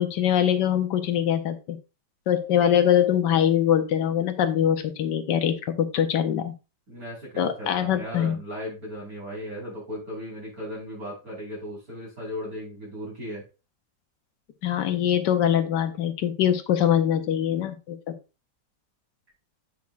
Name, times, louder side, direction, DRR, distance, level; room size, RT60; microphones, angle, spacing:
voice 1, 0.0-1.8 2.3-6.5 7.4-8.4 14.6-18.1, left 10 dB, 75° left, 9 dB, 1.4 m, -23 dB
voice 2, 6.9-13.4, equal, 55° right, -3 dB, 4.9 m, -36 dB
8.4 x 6.2 x 2.5 m, 0.30 s
omnidirectional pair, 1.9 m